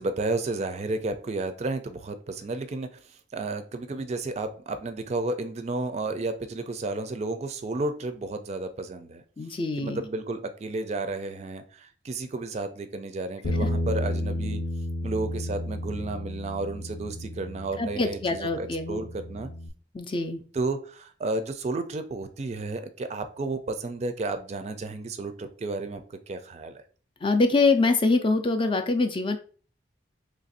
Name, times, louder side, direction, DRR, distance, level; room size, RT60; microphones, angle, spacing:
voice 1, 0.0-9.2 9.8-14.6 15.0-19.5 20.5-26.8, right 2 dB, 35° right, 9 dB, 0.4 m, -32 dB
voice 2, 9.4-10.0 17.8-19.0 19.9-20.4 27.2-29.4, left 3 dB, 30° left, 7 dB, 0.4 m, -24 dB
Bass guitar, 13.4-19.7, left 1 dB, 75° left, 0.6 m, -32 dB
3.2 x 2.5 x 4.0 m, 0.40 s
head